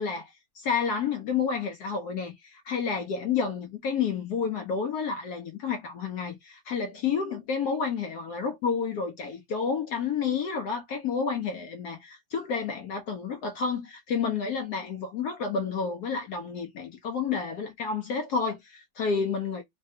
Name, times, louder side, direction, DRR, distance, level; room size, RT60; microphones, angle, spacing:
voice 1, 0.0-19.6, left 5 dB, 70° left, 0.9 m, -30 dB
3.2 x 2.3 x 2.6 m
omnidirectional pair, 2.0 m